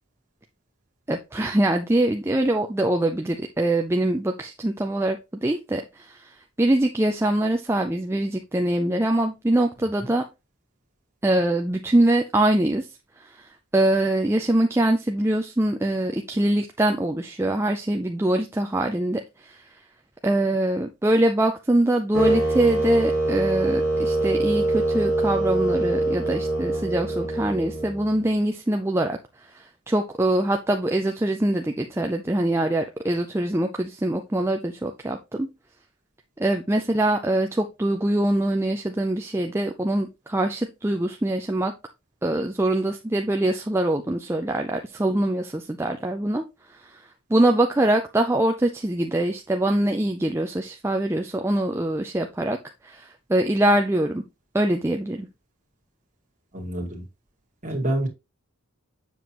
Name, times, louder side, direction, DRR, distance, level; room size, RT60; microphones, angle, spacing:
voice 1, 1.1-10.2 11.2-19.8 20.2-35.5 36.4-41.7 42.2-52.6 52.8-54.2 54.5-55.3, right 1 dB, 10° right, 4 dB, 0.4 m, -23 dB
sound 1, 22.1-28.2, right 2 dB, 80° left, 3.2 m, -24 dB
voice 2, 56.5-57.1 57.6-58.1, right 1 dB, 35° right, 1 dB, 1.8 m, -27 dB
7.2 x 5.9 x 2.9 m, 0.25 s
head